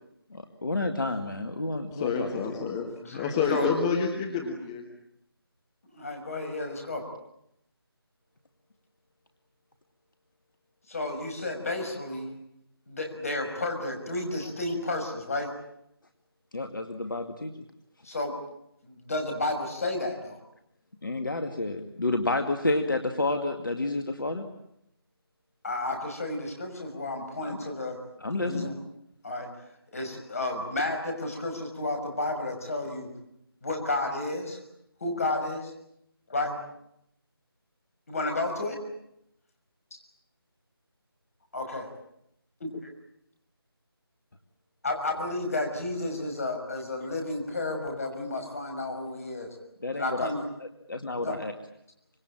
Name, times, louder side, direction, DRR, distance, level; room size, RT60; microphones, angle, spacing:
voice 1, 0.3-2.4 16.5-17.5 21.0-24.4 27.4-27.6 28.2-28.7 49.8-50.3 50.9-51.5, left 2 dB, 55° left, 6 dB, 2.2 m, -30 dB
voice 2, 1.9-4.8, left 5 dB, 10° left, 2 dB, 1.4 m, -28 dB
voice 3, 3.0-3.7 5.9-7.0 10.9-12.3 12.9-15.5 18.0-18.3 18.8-20.4 25.6-28.0 28.3-28.7 29.2-29.5 29.9-33.1 33.6-34.6 35.0-35.7 36.3-36.6 38.1-38.8 41.5-41.9 42.6-42.8 44.8-49.5 49.9-50.5 51.2-51.4, left 2 dB, 35° left, 4 dB, 5.9 m, -32 dB
25.5 x 22.5 x 8.9 m, 0.78 s
figure-of-eight pair, 160°, 13 cm